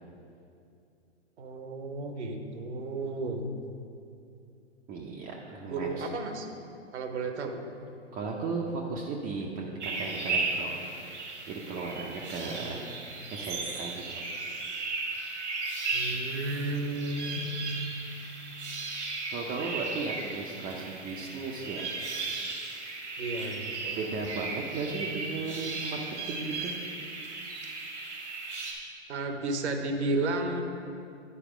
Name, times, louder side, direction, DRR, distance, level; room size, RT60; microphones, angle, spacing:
voice 1, 1.4-3.5 5.6-6.5 6.9-7.5 12.4-12.8 15.9-17.6 23.2-24.0 29.1-30.6, right 2 dB, 75° right, 5 dB, 1.0 m, -33 dB
voice 2, 4.9-6.1 8.1-10.8 11.5-12.9 13.3-14.2 19.3-21.9 23.9-26.0 26.3-26.7, right 4 dB, 25° right, -2 dB, 0.6 m, -36 dB
sound 1, 9.8-28.7, right 3 dB, 90° right, 1.6 m, -36 dB
10.0 x 4.2 x 4.9 m, 2.6 s
hypercardioid pair, 120°, 34 cm